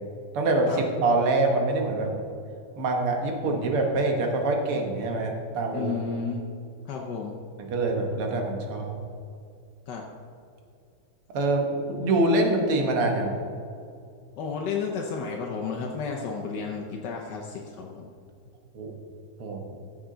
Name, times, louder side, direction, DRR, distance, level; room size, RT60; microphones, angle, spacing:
voice 1, 0.3-2.1 2.8-5.9 7.6-9.0 11.3-13.3 18.7-18.9 19.4-19.8, right 2 dB, 85° right, 2 dB, 2.2 m, -25 dB
voice 2, 5.7-6.4 6.9-7.4 9.9-10.0 14.4-18.1, left 5 dB, 60° left, 0 dB, 1.3 m, -32 dB
14.5 x 7.2 x 3.8 m, 2.4 s
omnidirectional pair, 2.4 m